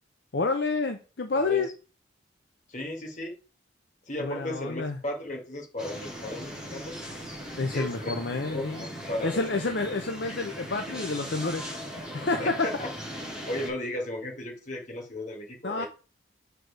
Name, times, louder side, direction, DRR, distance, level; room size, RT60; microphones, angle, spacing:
voice 1, 0.3-1.7 4.2-5.0 7.6-8.8 9.2-11.6 12.1-12.6 15.6-15.9, left 3 dB, 60° left, 5 dB, 0.7 m, -29 dB
voice 2, 2.7-3.3 4.1-7.0 7.7-8.2 8.5-9.6 12.4-12.9 13.5-15.9, left 1 dB, 40° left, 1 dB, 2.0 m, -35 dB
sound 1, 5.8-13.7, equal, 5° right, 3.3 m, -39 dB
6.5 x 4.6 x 4.7 m, 0.33 s
head